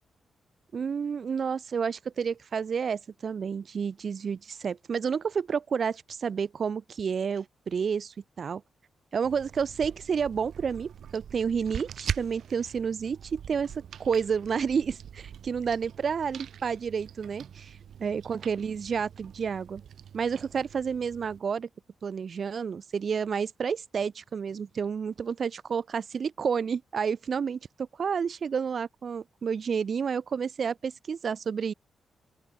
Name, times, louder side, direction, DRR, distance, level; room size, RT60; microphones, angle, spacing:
voice 1, 0.7-8.6 9.1-19.8 20.1-21.7 22.0-31.7, right 6 dB, 50° right, 4.1 m, -30 dB
sound 1, 9.2-21.4, right 9 dB, 75° right, 4.5 m, -42 dB
open air
cardioid pair, 105°, 0 cm